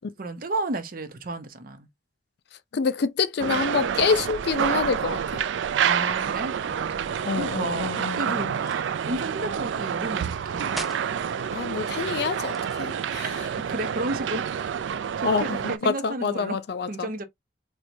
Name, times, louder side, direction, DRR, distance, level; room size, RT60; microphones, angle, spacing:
voice 1, 0.2-1.9 5.8-10.8 13.6-14.5 15.2-16.6 16.9-17.2, right 2 dB, 50° right, 0.7 m, -32 dB
voice 2, 2.7-5.4 7.3-8.5 11.5-13.3 15.2-17.1, left 5 dB, 60° left, 0.4 m, -27 dB
sound 1, 3.4-15.8, right 8 dB, 85° right, 0.3 m, -28 dB
sound 2, 8.6-9.0 10.6-11.1 12.4-13.3, equal, ahead, 0.4 m, -39 dB
4.4 x 2.2 x 2.6 m
head